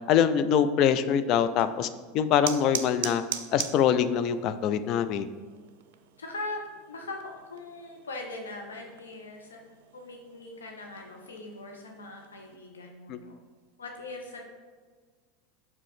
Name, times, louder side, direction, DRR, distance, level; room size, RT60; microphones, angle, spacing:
voice 1, 0.1-1.9 2.1-3.2 3.5-5.3 13.1-13.2, left 8 dB, 45° left, 11 dB, 0.4 m, -24 dB
sound 1, 1.4-12.6, right 10 dB, 60° right, 0.4 m, -42 dB
voice 2, 5.3-5.7 6.2-9.6 9.9-13.4 13.8-14.4, left 2 dB, 75° left, 1 dB, 0.8 m, -41 dB
5.5 x 4.9 x 5.0 m, 1.5 s
figure-of-eight pair, 80°, 0 cm